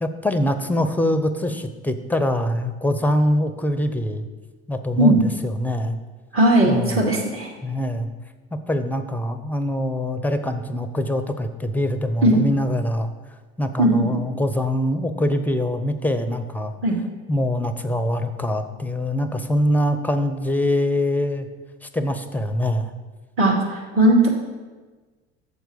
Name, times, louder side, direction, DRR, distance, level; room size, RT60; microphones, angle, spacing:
voice 1, 0.0-4.3 4.7-6.0 6.7-7.0 7.6-8.1 8.5-13.1 13.6-16.7 17.3-21.5 21.8-22.9, left 1 dB, 5° left, 9 dB, 0.6 m, -23 dB
voice 2, 6.3-7.5 12.2-12.4 13.8-14.0 16.8-17.0 23.4-24.3, right 1 dB, 40° right, -2 dB, 2.4 m, -17 dB
6.9 x 4.6 x 6.8 m, 1.3 s
hypercardioid pair, 70°, 33 cm